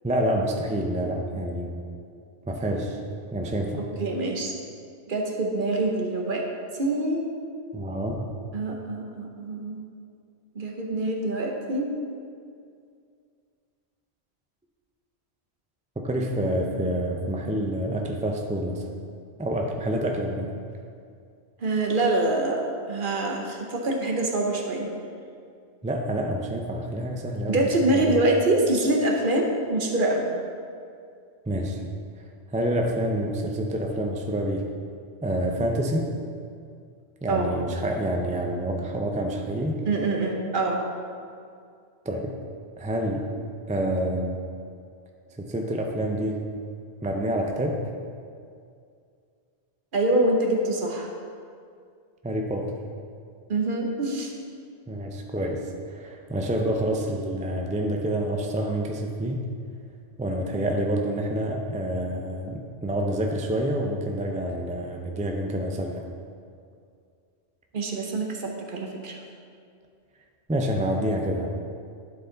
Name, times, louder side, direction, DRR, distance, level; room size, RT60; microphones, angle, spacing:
voice 1, 0.0-1.8 2.5-3.0 3.3-3.8 7.7-8.3 16.0-18.9 19.4-20.6 25.8-28.2 31.5-31.9 32.5-34.7 35.2-36.1 37.2-39.8 42.0-42.4 42.8-43.3 43.7-44.4 45.4-46.5 47.0-47.9 52.2-52.8 54.9-59.5 60.2-66.0 70.5-71.5, right 1 dB, 10° right, 1 dB, 0.4 m, -28 dB
voice 2, 3.8-4.5 5.1-6.4 6.8-7.2 8.5-9.8 10.5-11.9 21.6-24.9 27.5-30.3 37.3-37.6 39.9-40.8 49.9-51.1 53.5-54.3 67.7-69.2, right 2 dB, 55° right, 1 dB, 1.0 m, -25 dB
11.0 x 4.8 x 3.9 m, 2.3 s
omnidirectional pair, 1.1 m